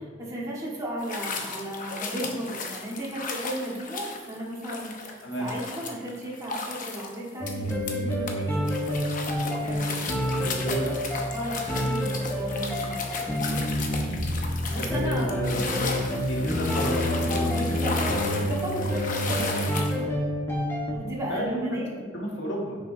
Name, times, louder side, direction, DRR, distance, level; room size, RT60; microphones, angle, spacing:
voice 1, 0.2-8.9 9.7-10.0 11.3-13.5 14.7-15.6 16.7-16.8 17.4-20.0 20.9-21.9 22.2-22.4, right 1 dB, 15° right, -6 dB, 1.9 m, -35 dB
sound 1, 1.0-8.3 8.7-20.0, left 3 dB, 45° left, 0.9 m, -35 dB
sound 2, 7.4-21.0, left 1 dB, 10° left, 1.4 m, -28 dB
voice 2, 10.4-11.0 14.8-17.6 19.9-20.1 21.3-22.8, right 1 dB, 65° left, -3 dB, 2.0 m, -32 dB
9.3 x 6.5 x 2.9 m, 1.5 s
head